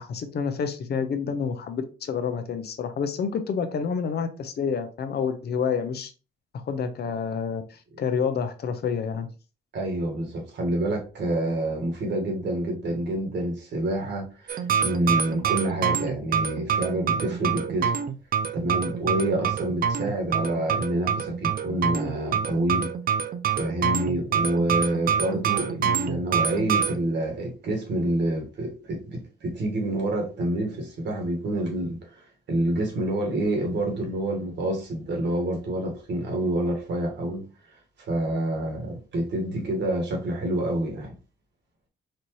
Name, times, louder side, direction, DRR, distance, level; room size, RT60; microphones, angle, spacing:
voice 1, 0.0-6.1 6.5-9.3, left 6 dB, 55° left, 0.7 m, -28 dB
voice 2, 9.7-17.9 18.5-22.9 23.5-37.5 38.1-41.1, right 1 dB, 60° right, 1.6 m, -28 dB
sound 1, 14.5-27.0, right 7 dB, 45° right, 0.5 m, -26 dB
4.3 x 2.6 x 3.1 m
cardioid pair, 90°, 20 cm